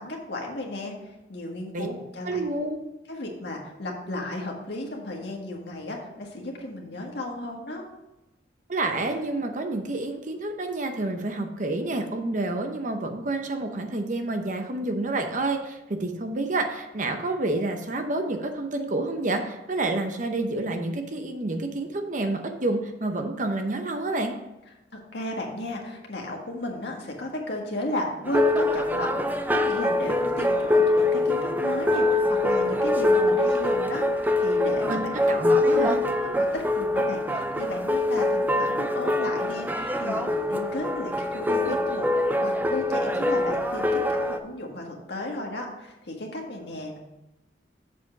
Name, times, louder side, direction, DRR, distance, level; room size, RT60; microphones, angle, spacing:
voice 1, 0.0-2.4 3.1-7.9 24.9-35.1 36.4-47.0, left 1 dB, 65° left, 0 dB, 1.6 m, -34 dB
voice 2, 2.2-2.8 8.7-24.4 34.9-36.0, right 2 dB, 45° right, 5 dB, 0.8 m, -29 dB
sound 1, 28.3-44.4, left 2 dB, 10° right, 0.4 m, -24 dB
7.1 x 5.0 x 5.8 m, 0.97 s
head